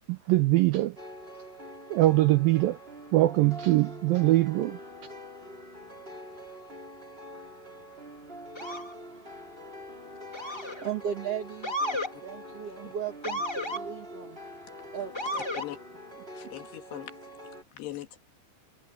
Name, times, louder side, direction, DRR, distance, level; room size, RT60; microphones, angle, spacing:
voice 1, 0.1-1.0 1.9-2.8 3.1-4.8, right 17 dB, 80° right, 2.1 m, -22 dB
sound 1, 1.0-17.6, equal, 15° right, 5.3 m, -45 dB
Motor vehicle (road) / Siren, 8.5-8.9 10.3-10.9 11.6-12.1 13.2-13.8 15.1-15.7, left 1 dB, 10° left, 1.2 m, -32 dB
voice 2, 10.8-11.8 12.2-14.4 14.9-15.5 16.1-16.5, right 8 dB, 55° right, 1.8 m, -36 dB
voice 3, 16.3-17.1 17.7-18.2, left 13 dB, 75° left, 3.8 m, -40 dB
omnidirectional pair, 4.9 m